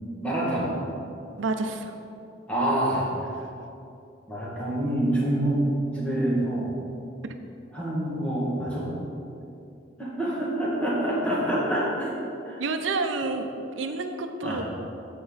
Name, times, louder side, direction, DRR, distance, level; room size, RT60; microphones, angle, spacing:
voice 1, 0.2-0.7 2.5-3.1 4.3-5.7 5.9-6.7 7.7-8.9 10.0-12.1 12.4-12.6 12.9-13.0 14.4-14.6, right 1 dB, 5° left, -6 dB, 2.0 m, -26 dB
voice 2, 1.4-2.0 12.6-13.5 13.8-14.6, right 3 dB, 85° right, 6 dB, 0.6 m, -29 dB
14.5 x 5.4 x 4.1 m, 2.7 s
head